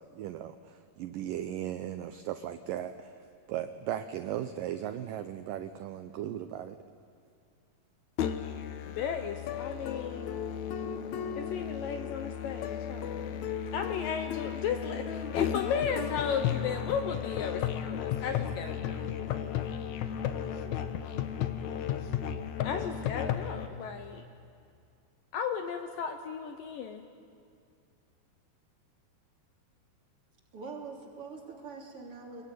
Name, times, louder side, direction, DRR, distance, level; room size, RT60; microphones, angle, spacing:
voice 1, 0.0-3.1 3.5-6.8, right 11 dB, 80° right, 9 dB, 2.0 m, -37 dB
Musical instrument, 8.2-23.7, left 9 dB, 90° left, 1.6 m, -34 dB
voice 2, 8.8-10.4 11.4-13.4 13.7-19.1 22.6-24.2 25.3-27.0, left 7 dB, 70° left, 6 dB, 2.2 m, -35 dB
voice 3, 30.5-32.4, right 4 dB, 35° right, -1 dB, 3.6 m, -44 dB
25.5 x 22.0 x 9.3 m, 2.4 s
omnidirectional pair, 4.8 m